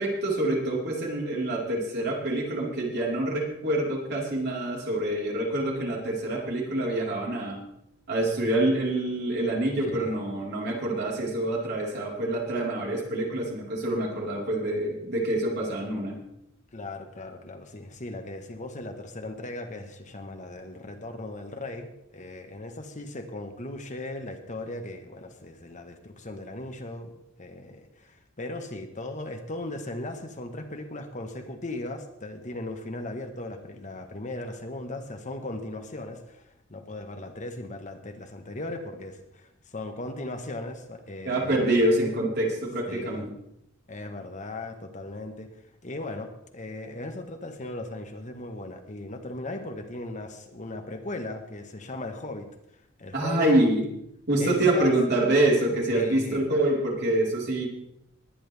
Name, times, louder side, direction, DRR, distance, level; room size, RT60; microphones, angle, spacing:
voice 1, 0.0-7.6 8.1-16.1 41.2-43.3 53.1-53.8 54.3-57.7, right 1 dB, 55° right, -3 dB, 4.5 m, -26 dB
voice 2, 9.8-10.2 16.7-27.1 27.4-36.4 36.7-41.6 42.9-43.3 43.9-45.5 45.8-52.5 53.0-53.5 54.4-54.9 55.9-56.4, left 2 dB, 40° left, 5 dB, 1.4 m, -37 dB
20.5 x 10.0 x 3.5 m, 0.78 s
head